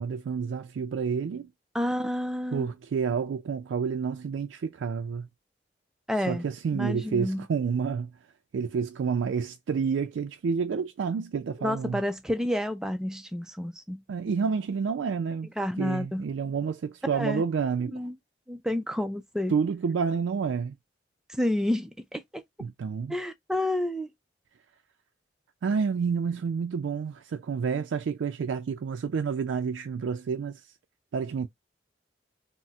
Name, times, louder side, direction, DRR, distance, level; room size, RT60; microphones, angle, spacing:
voice 1, 0.0-1.5 2.5-5.3 6.3-8.1 8.5-12.0 14.1-15.5 15.8-17.9 19.5-20.7 22.6-23.1 25.6-30.6 31.1-31.5, right 6 dB, 90° right, 0.3 m, -29 dB
voice 2, 1.7-2.7 6.1-6.4 6.7-7.4 11.6-14.0 15.6-16.2 17.2-17.4 17.8-18.1 18.5-19.5 21.3-22.2 23.1-24.1, left 1 dB, 5° right, 0.3 m, -29 dB
4.1 x 2.0 x 2.3 m
head